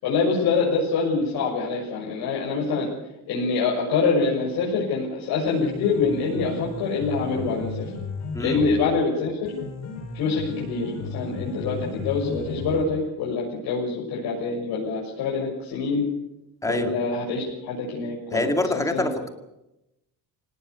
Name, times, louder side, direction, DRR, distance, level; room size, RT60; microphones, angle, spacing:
voice 1, 0.0-2.9 3.3-7.9 8.4-9.4 10.1-16.1 16.6-19.1, left 4 dB, 65° left, -3 dB, 7.0 m, -25 dB
Piano, 5.3-13.2, left 4 dB, 40° left, 8.0 m, -35 dB
voice 2, 16.6-16.9 18.3-19.3, left 1 dB, 10° left, 6 dB, 2.2 m, -25 dB
25.0 x 19.0 x 7.0 m, 0.90 s
cardioid pair, 160°, 40 cm